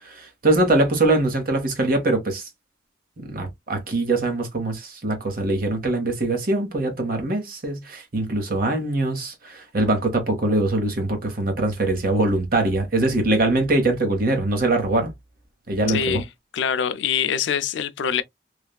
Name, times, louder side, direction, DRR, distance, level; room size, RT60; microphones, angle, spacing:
voice 1, 0.0-2.5 3.2-15.1 15.7-16.2, right 2 dB, 55° right, 1.0 m, -22 dB
voice 2, 15.9-16.3 16.5-18.2, left 7 dB, 80° left, 0.4 m, -24 dB
3.3 x 2.3 x 2.2 m
head